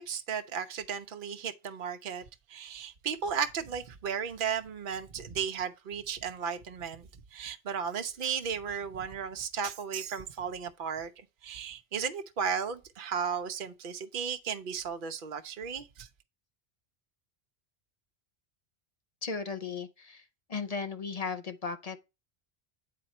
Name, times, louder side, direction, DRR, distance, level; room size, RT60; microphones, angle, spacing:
voice 1, 0.0-2.2 2.5-11.1 11.4-16.1, right 7 dB, 55° right, 0.9 m, -35 dB
voice 2, 19.2-20.2 20.5-22.0, left 5 dB, 40° left, 0.6 m, -36 dB
8.6 x 3.9 x 4.3 m
omnidirectional pair, 1.1 m